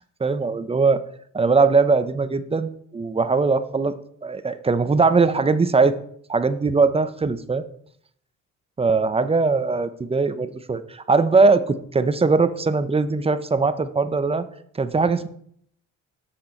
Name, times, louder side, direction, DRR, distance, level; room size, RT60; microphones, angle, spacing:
voice 1, 0.2-1.0 1.3-3.9 4.2-5.9 6.3-7.6 8.8-14.4 14.8-15.3, right 4 dB, 20° right, 12 dB, 0.7 m, -20 dB
7.7 x 6.5 x 4.4 m, 0.65 s
cardioid pair, 90°, 30 cm